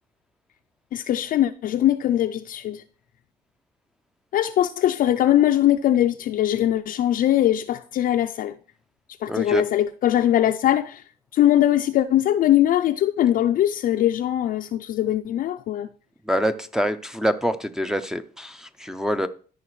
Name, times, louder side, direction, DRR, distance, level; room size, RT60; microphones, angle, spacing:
voice 1, 0.9-2.8 4.3-8.6 9.2-11.0 11.3-15.9, left 12 dB, 55° left, 0.4 m, -21 dB
voice 2, 9.3-9.6 16.3-19.3, equal, 5° right, 0.5 m, -25 dB
13.5 x 4.9 x 3.1 m
cardioid pair, 110°, 17 cm